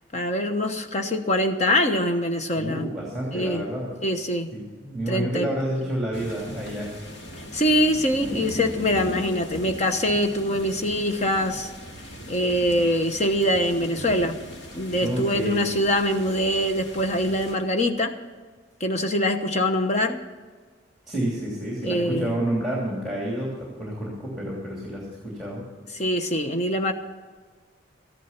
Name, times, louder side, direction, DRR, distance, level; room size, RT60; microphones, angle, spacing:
voice 1, 0.1-2.9 3.3-3.6 4.0-4.5 5.1-5.5 7.5-11.7 12.3-14.4 14.7-18.1 18.8-20.2 21.8-22.4 25.9-26.9, left 1 dB, 35° left, 6 dB, 1.0 m, -24 dB
voice 2, 2.6-3.9 4.5-6.9 15.0-15.6 21.1-25.6, right 1 dB, ahead, -4 dB, 2.9 m, -29 dB
sound 1, 6.1-17.6, equal, 65° left, 2.2 m, -39 dB
14.0 x 11.0 x 5.9 m, 1.4 s
head